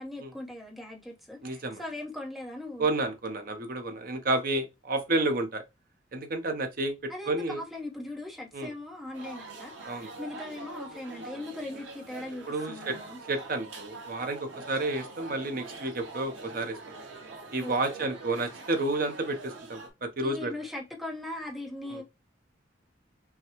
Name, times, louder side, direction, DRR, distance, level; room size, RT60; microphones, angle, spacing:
voice 1, 0.0-2.9 7.1-13.2 17.6-18.1 20.2-22.0, left 1 dB, ahead, 1.0 m, -40 dB
voice 2, 1.4-1.8 2.8-5.6 6.1-7.6 8.5-8.7 9.9-10.1 12.5-12.9 13.3-16.8 17.5-20.5 21.9-22.0, right 2 dB, 50° right, 0.8 m, -30 dB
sound 1, 9.1-19.9, right 3 dB, 90° right, 1.0 m, -44 dB
5.6 x 2.3 x 2.9 m
head